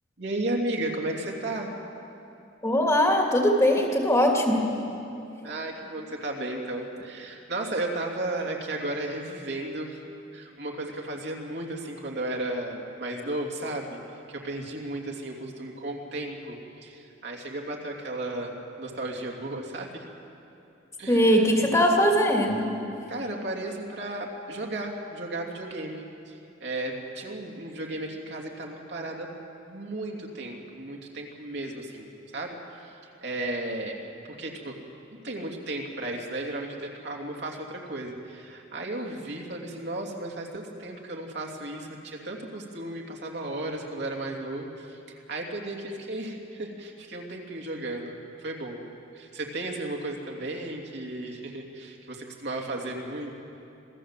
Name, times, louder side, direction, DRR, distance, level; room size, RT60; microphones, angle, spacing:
voice 1, 0.2-1.7 5.4-10.0 10.3-14.0 14.3-20.0 21.0-21.7 23.1-29.3 29.7-32.1 32.3-32.9 33.2-34.0 34.2-34.8 35.1-48.8 49.1-53.3, right 2 dB, 60° right, 0 dB, 2.9 m, -34 dB
voice 2, 2.6-4.7 21.1-22.7, equal, 15° left, 1 dB, 2.5 m, -21 dB
27.0 x 17.0 x 7.6 m, 2.8 s
head